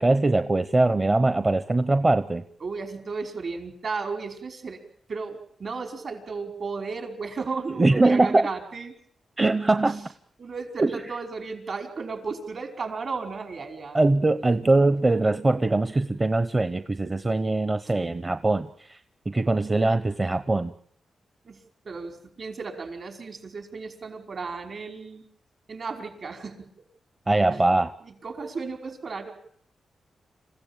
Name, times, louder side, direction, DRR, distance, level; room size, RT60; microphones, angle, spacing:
voice 1, 0.0-2.4 7.8-8.5 9.4-10.1 10.8-11.0 13.9-19.0 19.3-20.7 27.3-27.9, right 2 dB, 25° right, 11 dB, 0.9 m, -22 dB
voice 2, 2.6-4.8 5.1-8.9 10.4-14.1 21.5-21.6 21.9-25.3 25.7-26.7 27.5-27.6 28.0-29.3, right 4 dB, 55° right, 5 dB, 5.2 m, -34 dB
27.5 x 15.5 x 9.0 m, 0.64 s
cardioid pair, 95°, 0 cm